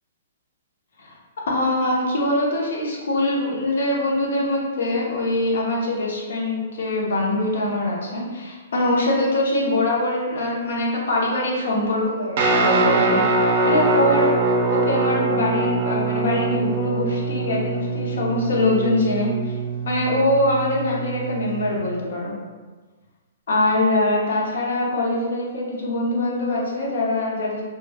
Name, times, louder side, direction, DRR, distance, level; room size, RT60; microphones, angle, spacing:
voice 1, 1.5-13.2 13.6-14.3 14.7-19.5 19.8-22.3 23.5-27.6, left 1 dB, 75° left, -3 dB, 0.7 m, -23 dB
Guitar, 12.4-21.7, right 3 dB, 45° right, 0.4 m, -23 dB
2.2 x 2.1 x 3.3 m, 1.4 s
hypercardioid pair, 155°, 0 cm